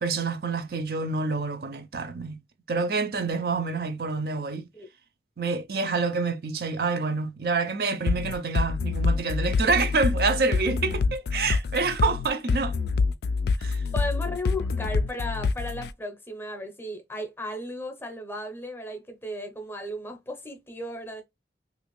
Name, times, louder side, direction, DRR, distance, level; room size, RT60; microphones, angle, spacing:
voice 1, 0.0-2.4 2.7-4.7 5.4-12.8 13.6-13.8, right 4 dB, 60° right, 0.5 m, -27 dB
sound 1, 8.1-15.9, left 4 dB, 65° left, 0.3 m, -26 dB
voice 2, 13.9-21.2, left 1 dB, 15° left, 0.7 m, -35 dB
3.4 x 2.5 x 3.0 m
head